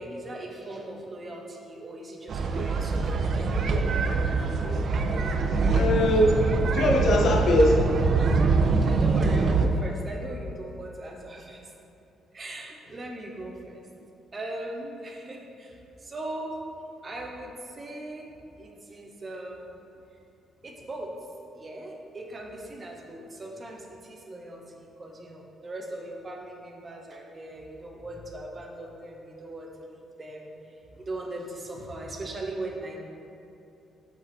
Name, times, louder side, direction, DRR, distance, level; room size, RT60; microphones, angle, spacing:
voice 1, 0.0-3.4 8.8-11.6 12.3-13.8 14.3-16.6 17.0-18.3 18.6-19.7 20.6-21.1 21.5-30.5 31.0-33.0, right 1 dB, 35° right, 1 dB, 0.9 m, -39 dB
sound 1, 2.3-9.7, right 4 dB, 55° right, 0.5 m, -24 dB
voice 2, 5.7-8.0 8.5-8.6, left 1 dB, 65° left, 1 dB, 0.8 m, -22 dB
7.6 x 4.8 x 3.4 m, 2.7 s
cardioid pair, 90°, 0 cm